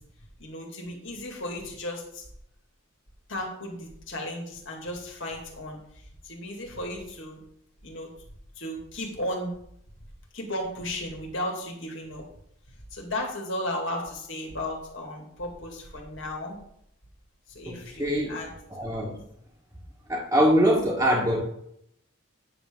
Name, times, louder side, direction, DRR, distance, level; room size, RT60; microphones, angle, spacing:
voice 1, 0.4-2.2 3.3-5.8 6.3-7.4 7.8-8.1 8.6-9.5 10.3-12.2 12.9-16.6 17.6-18.5, left 1 dB, 60° left, 1 dB, 2.2 m, -34 dB
voice 2, 18.0-18.4 18.7-19.1 20.1-21.4, equal, 10° right, -7 dB, 1.5 m, -23 dB
9.5 x 6.9 x 3.8 m, 0.72 s
head